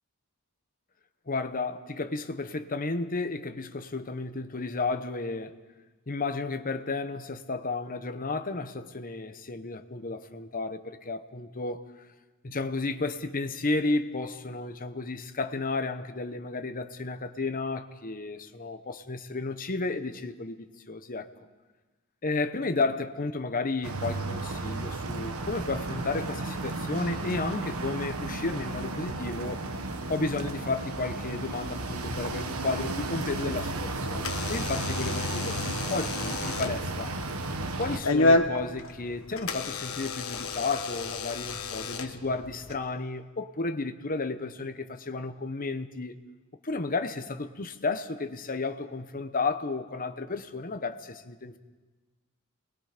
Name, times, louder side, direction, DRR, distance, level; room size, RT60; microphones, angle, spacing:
voice 1, 1.3-5.6 6.1-11.9 12.4-21.3 22.2-29.7 30.1-37.1 37.8-46.2 46.6-51.6, left 3 dB, 40° left, 1.1 m, -32 dB
sound 1, 23.8-38.0, right 2 dB, 80° right, 1.5 m, -33 dB
Door / Alarm, 33.5-42.7, left 2 dB, 70° left, 1.4 m, -31 dB
28.0 x 20.5 x 5.2 m
head